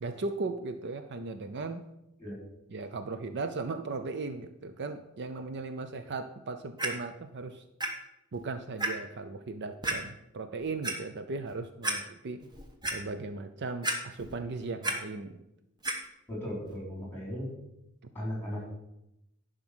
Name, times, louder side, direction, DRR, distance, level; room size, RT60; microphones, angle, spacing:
voice 1, 0.0-1.8 2.7-7.6 8.3-12.4 12.9-15.4, right 3 dB, 55° right, 9 dB, 0.6 m, -37 dB
Clock, 6.8-6.9 7.8-7.9 8.3-8.4 8.8-8.9 9.8-10.0 10.6-10.9 11.5-11.6 11.8-12.0 12.4-13.0 13.8-14.4 14.6-15.0 15.8-16.0 16.7-16.8, right 2 dB, 20° right, 1.2 m, -31 dB
voice 2, 16.3-17.5 18.1-18.6, equal, 10° left, -3 dB, 3.9 m, -36 dB
10.5 x 5.2 x 6.1 m, 0.85 s
head